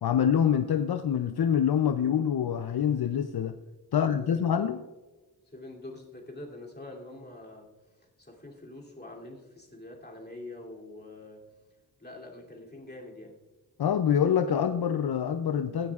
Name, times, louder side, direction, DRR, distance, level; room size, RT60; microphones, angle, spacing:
voice 1, 0.0-3.6 3.9-4.8 13.8-15.9, left 8 dB, 70° left, 10 dB, 0.5 m, -26 dB
voice 2, 3.9-4.4 4.7-4.8 5.5-7.7 8.2-11.5 12.0-13.4, left 2 dB, 25° left, -2 dB, 2.8 m, -45 dB
15.5 x 10.5 x 2.4 m, 1.2 s
wide cardioid pair, 55°, 39 cm